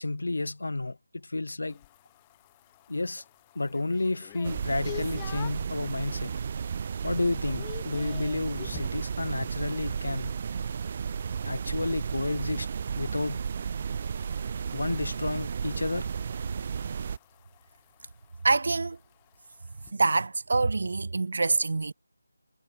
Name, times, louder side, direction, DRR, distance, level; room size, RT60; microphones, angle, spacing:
voice 1, 0.0-1.8 2.9-3.2 3.6-6.3 7.0-10.3 11.4-12.7 13.0-13.5 14.7-16.1, left 2 dB, 65° left, 5.3 m, -31 dB
sound 1, 1.7-5.7 6.2-6.7 6.9-9.0 11.5-19.9, left 19 dB, 15° left, 4.3 m, -48 dB
sound 2, 4.4-17.2, right 6 dB, 35° right, 3.3 m, -33 dB
voice 2, 18.4-19.0 19.9-21.9, right 3 dB, 55° right, 4.6 m, -25 dB
figure-of-eight pair, 160°, 0 cm